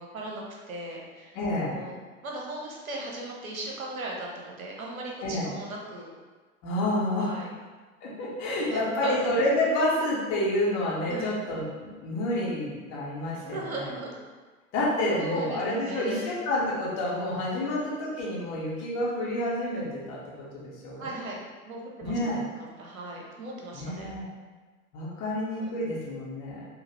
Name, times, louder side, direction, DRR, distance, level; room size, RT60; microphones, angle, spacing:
voice 1, 0.0-1.4 1.6-6.1 7.1-7.5 8.6-9.2 11.1-11.4 13.4-14.1 15.1-16.4 17.6-17.8 21.0-21.4 21.7-22.2 22.5-24.1 25.6-25.7, right 2 dB, 75° right, -2 dB, 1.0 m, -38 dB
voice 2, 1.3-1.8 5.2-5.5 6.6-7.3 8.0-13.9 14.7-21.1 22.0-22.4 23.7-24.3 24.9-26.7, left 1 dB, 40° left, -5 dB, 1.4 m, -29 dB
5.0 x 2.7 x 3.0 m, 1.4 s
figure-of-eight pair, 90°, 43 cm